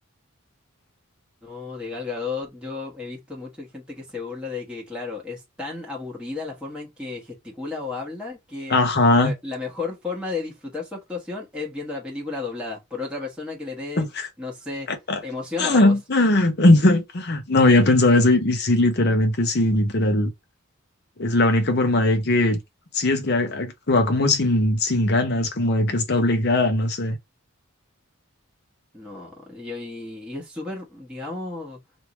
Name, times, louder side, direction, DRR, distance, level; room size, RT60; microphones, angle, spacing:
voice 1, 1.4-8.8 9.1-14.1 14.4-14.9 15.2-16.0 28.9-31.8, left 3 dB, 5° right, 1.3 m, -33 dB
voice 2, 8.7-9.3 14.0-14.3 14.9-15.2 15.6-20.3 21.2-22.6 22.9-27.2, left 2 dB, 50° left, 0.8 m, -19 dB
3.2 x 2.7 x 3.1 m
head